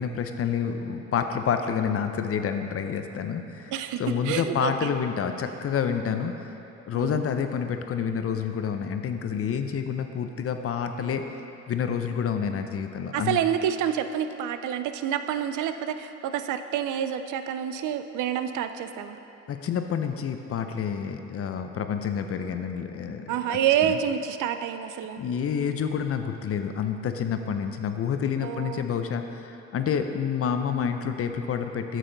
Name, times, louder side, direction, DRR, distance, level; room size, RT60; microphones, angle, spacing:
voice 1, 0.0-3.7 4.0-6.3 6.9-11.2 11.7-13.4 19.5-23.6 25.2-32.0, left 7 dB, 50° left, 7 dB, 0.6 m, -28 dB
voice 2, 3.7-5.0 6.9-7.2 13.1-19.2 23.3-25.2 28.4-28.9, right 9 dB, 80° right, 9 dB, 0.5 m, -28 dB
8.9 x 6.6 x 3.9 m, 3.0 s
cardioid pair, 90°, 30 cm